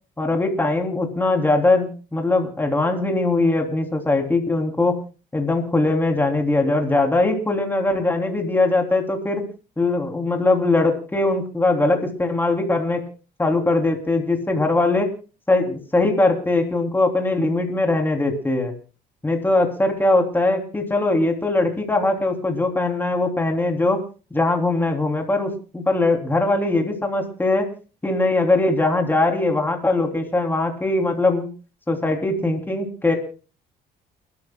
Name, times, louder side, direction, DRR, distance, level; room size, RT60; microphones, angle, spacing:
voice 1, 0.2-5.0 5.3-9.4 9.8-13.0 13.4-15.1 15.5-18.7 19.2-24.0 24.3-27.7 28.0-31.5 31.9-33.2, left 2 dB, 10° left, 2 dB, 3.2 m, -21 dB
29.5 x 12.5 x 2.3 m, 0.36 s
cardioid pair, 110°, 17 cm